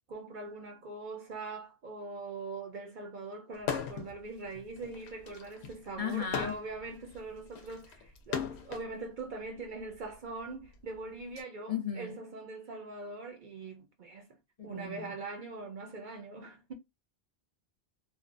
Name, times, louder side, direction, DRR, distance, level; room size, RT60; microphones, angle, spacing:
voice 1, 0.1-14.4 14.6-16.7, right 3 dB, 55° right, 0.7 m, -42 dB
sound 1, 3.6-4.1 4.5-8.9 9.8-11.4, left 7 dB, 85° left, 0.9 m, -38 dB
voice 2, 6.0-6.5 11.7-12.2 14.6-15.1, left 7 dB, 40° left, 0.6 m, -35 dB
2.6 x 2.2 x 2.5 m
omnidirectional pair, 1.1 m